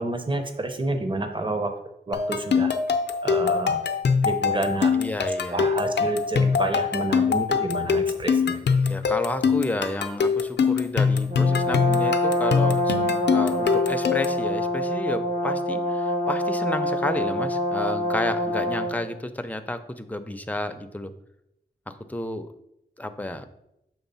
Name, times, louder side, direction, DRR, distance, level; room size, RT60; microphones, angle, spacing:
voice 1, 0.0-1.7 2.1-2.7 3.2-3.8 4.2-4.9 5.5-8.6, right 2 dB, 30° right, 6 dB, 0.8 m, -29 dB
sound 1, 2.1-14.4, left 5 dB, 80° left, 0.5 m, -23 dB
voice 2, 4.9-5.8 8.8-21.1 21.9-22.5 23.0-23.5, left 1 dB, 10° left, 8 dB, 0.5 m, -31 dB
Brass instrument, 11.3-19.1, left 1 dB, 55° right, 1.4 m, -25 dB
7.1 x 3.3 x 5.5 m, 0.85 s
wide cardioid pair, 85°, 17 cm